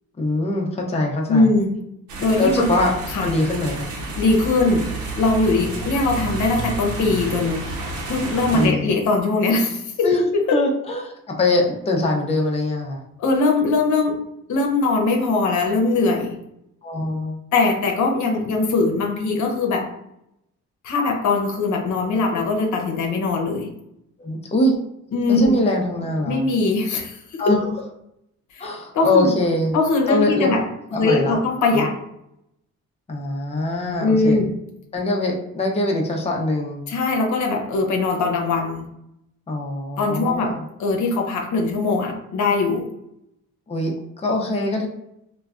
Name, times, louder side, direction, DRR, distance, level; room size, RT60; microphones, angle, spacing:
voice 1, 0.2-1.5 2.4-2.9 3.2-3.8 8.5-8.9 10.0-13.0 16.8-17.4 24.2-24.8 25.3-26.5 27.4-27.6 28.6-29.7 30.1-30.5 30.9-31.4 31.7-31.9 33.1-34.4 34.9-36.8 39.5-40.6 43.7-44.9, left 2 dB, 20° left, 0 dB, 0.6 m, -22 dB
voice 2, 1.3-1.7 2.2-2.7 3.1-3.3 4.2-4.9 5.2-7.6 8.0-10.6 13.2-14.2 14.5-16.4 17.5-19.9 20.8-23.7 25.1-25.6 26.3-27.5 28.5-28.7 28.9-29.3 29.7-30.6 30.9-31.9 34.0-34.5 36.9-38.9 40.0-40.5 40.8-42.9, left 3 dB, 75° left, 2 dB, 0.7 m, -21 dB
sound 1, 2.1-8.7, right 3 dB, 80° right, 0.8 m, -30 dB
3.2 x 2.2 x 2.4 m, 0.79 s
cardioid pair, 90°, 30 cm